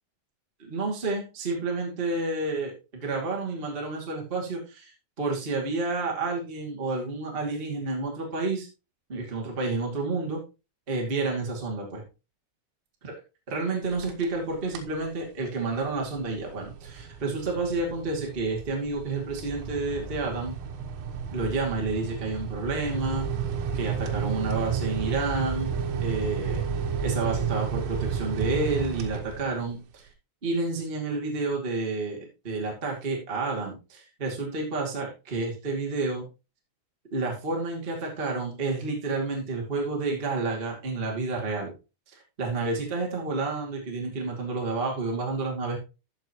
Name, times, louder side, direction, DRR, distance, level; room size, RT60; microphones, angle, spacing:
voice 1, 0.6-4.9 5.2-8.7 9.1-10.4 10.9-12.0 13.5-20.6 21.3-23.3 23.7-25.7 26.0-26.7 27.0-30.1 30.4-36.2 37.1-41.7 42.1-45.8, right 3 dB, 55° right, -1 dB, 0.6 m, -30 dB
sound 1, 13.9-14.4 14.7-15.0 15.5-29.8, right 6 dB, 85° right, 3.6 m, -32 dB
13.5 x 6.4 x 3.0 m, 0.29 s
omnidirectional pair, 5.8 m